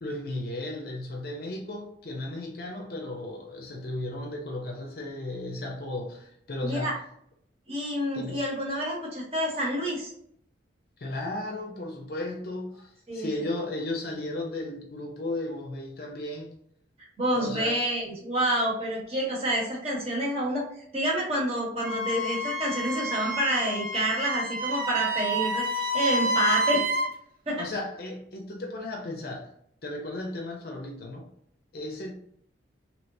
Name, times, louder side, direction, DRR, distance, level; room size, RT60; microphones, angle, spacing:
voice 1, 0.0-6.9 8.1-8.4 11.0-16.5 17.3-17.8 27.6-29.5 29.8-31.3 31.7-32.1, left 2 dB, 50° left, 0.5 m, -35 dB
voice 2, 6.6-6.9 7.7-10.1 13.1-13.3 17.2-20.6 20.9-26.9 27.5-27.6, equal, 30° right, 1.1 m, -28 dB
Wind instrument woodwind instrument, 21.8-27.1, right 1 dB, 50° right, 0.6 m, -29 dB
3.2 x 2.8 x 2.7 m
head